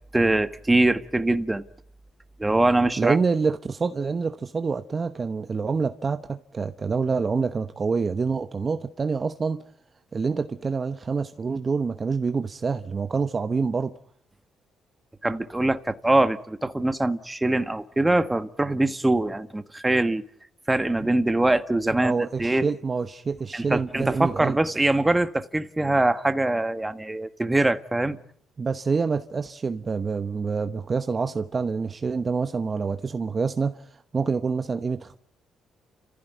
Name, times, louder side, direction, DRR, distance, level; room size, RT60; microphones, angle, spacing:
voice 1, 0.1-1.6 2.4-3.2 15.2-20.2 20.7-22.7 23.5-28.2, right 2 dB, 15° right, 1.5 m, -23 dB
voice 2, 3.0-9.6 10.1-13.9 22.0-24.6 28.6-35.2, right 4 dB, 35° right, 1.0 m, -27 dB
30.0 x 15.0 x 9.3 m
cardioid pair, 90°, 0 cm